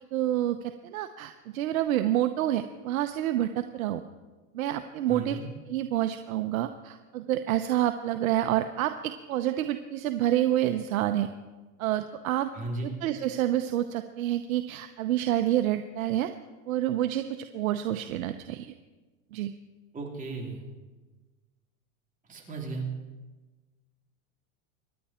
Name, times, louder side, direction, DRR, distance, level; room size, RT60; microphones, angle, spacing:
voice 1, 0.1-4.0 4.5-5.4 5.7-11.3 11.8-12.5 12.8-16.3 16.7-18.7 19.3-19.5, right 12 dB, 85° right, 8 dB, 0.9 m, -28 dB
voice 2, 5.1-5.4 12.5-12.9 19.9-20.6 22.3-22.8, right 2 dB, 20° right, 0 dB, 3.4 m, -35 dB
25.0 x 10.0 x 4.4 m, 1.2 s
supercardioid pair, 135°, 40 cm